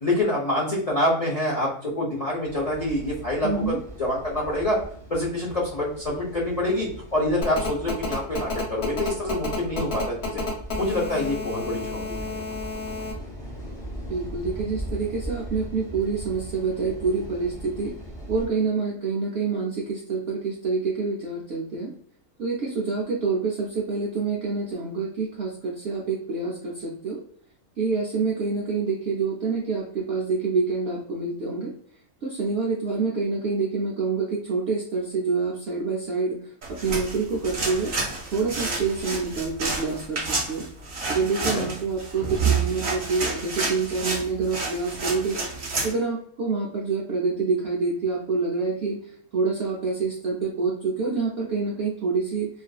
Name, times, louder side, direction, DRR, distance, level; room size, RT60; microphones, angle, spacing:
voice 1, 0.0-4.8 5.1-10.4 10.8-12.3 41.5-41.7, left 1 dB, 70° left, -5 dB, 0.3 m, -26 dB
sound 1, 2.4-18.5, right 1 dB, 5° left, 0.5 m, -39 dB
voice 2, 3.4-3.8 14.1-17.9 18.3-21.9 22.4-27.2 27.8-31.7 32.2-37.9 38.3-40.7 41.1-45.4 45.8-52.5, right 4 dB, 75° right, -2 dB, 0.5 m, -27 dB
Telephone, 7.4-13.1, left 4 dB, 50° left, 1.1 m, -31 dB
sound 2, 36.6-45.9, right 4 dB, 45° right, 0.8 m, -29 dB
2.5 x 2.4 x 2.2 m, 0.64 s
omnidirectional pair, 1.6 m